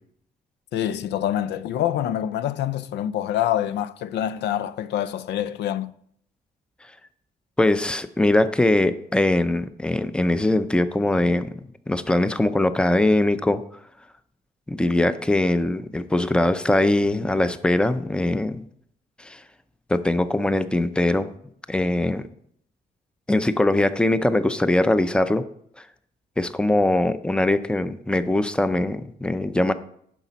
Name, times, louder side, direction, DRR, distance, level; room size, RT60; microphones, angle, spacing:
voice 1, 0.7-5.9, left 11 dB, 90° left, 0.4 m, -26 dB
voice 2, 7.6-13.6 14.7-18.7 19.2-19.4 19.9-21.3 21.7-22.3 23.3-25.5 26.4-29.7, left 1 dB, 5° left, 0.5 m, -21 dB
10.0 x 6.0 x 4.0 m
cardioid pair, 100°, 17 cm